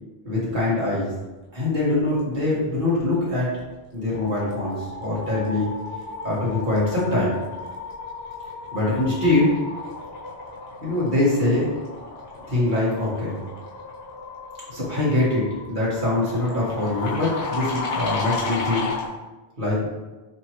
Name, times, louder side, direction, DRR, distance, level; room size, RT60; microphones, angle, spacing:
voice 1, 0.3-1.1 1.5-3.5 3.9-5.7 6.2-7.4 8.7-9.5 10.8-11.7 12.5-13.4 14.7-18.9 19.6-19.8, left 2 dB, 50° right, -7 dB, 1.7 m, -23 dB
sqeaking whining bubbles in water with burst, 3.3-3.6 3.9-19.1, left 3 dB, 75° left, 1.2 m, -34 dB
6.0 x 3.0 x 2.9 m, 1.1 s
omnidirectional pair, 1.0 m